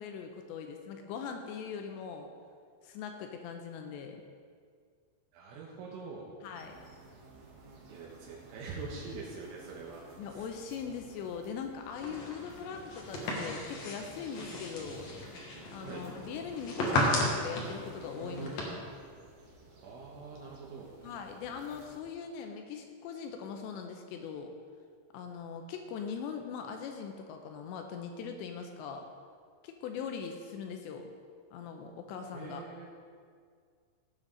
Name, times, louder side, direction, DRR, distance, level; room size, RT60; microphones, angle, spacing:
voice 1, 0.0-2.3 2.8-4.2 6.4-6.8 10.2-15.1 15.7-18.8 21.0-24.5 25.1-29.0 29.6-31.1 31.5-32.6, left 6 dB, 85° left, 4 dB, 2.8 m, -41 dB
voice 2, 5.3-6.4 7.9-10.5 15.8-16.1 19.8-20.9 32.3-32.9, right 4 dB, 80° right, -3 dB, 3.6 m, -44 dB
sound 1, 6.5-22.0, right 2 dB, 60° right, 1.8 m, -53 dB
sound 2, 11.9-18.6, left 1 dB, 60° left, 1.8 m, -35 dB
17.0 x 7.8 x 3.9 m, 2.1 s
omnidirectional pair, 5.4 m